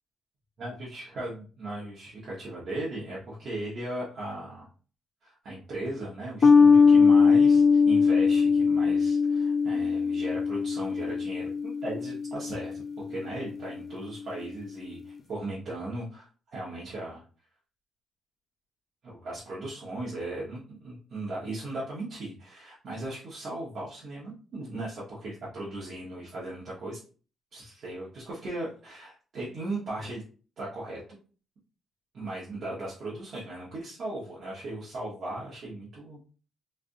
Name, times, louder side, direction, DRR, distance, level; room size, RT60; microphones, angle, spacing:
voice 1, 0.6-4.7 5.2-17.2 19.0-27.0 27.5-30.2 30.6-31.0 32.1-36.2, right 2 dB, 55° right, -7 dB, 1.2 m, -37 dB
sound 1, 6.4-13.2, left 5 dB, 45° left, 0.4 m, -21 dB
3.2 x 2.5 x 2.6 m, 0.38 s
cardioid pair, 90°, 0 cm